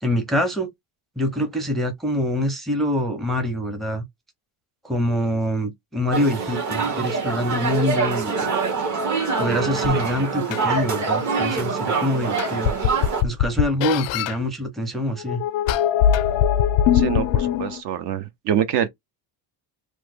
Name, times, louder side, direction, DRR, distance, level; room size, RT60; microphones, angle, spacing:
voice 1, 0.0-0.7 1.2-4.0 4.8-8.5 9.4-12.7 13.2-15.4, left 1 dB, ahead, 0.6 m, -25 dB
sound 1, 6.1-13.2, right 4 dB, 35° right, 1.1 m, -24 dB
sound 2, 9.8-9.9 10.5-10.6 11.9-12.0 12.4-14.4 15.2-17.8, left 9 dB, 85° left, 0.5 m, -21 dB
voice 2, 16.9-18.9, right 9 dB, 55° right, 0.8 m, -25 dB
3.0 x 2.1 x 3.4 m
cardioid pair, 125°, 49 cm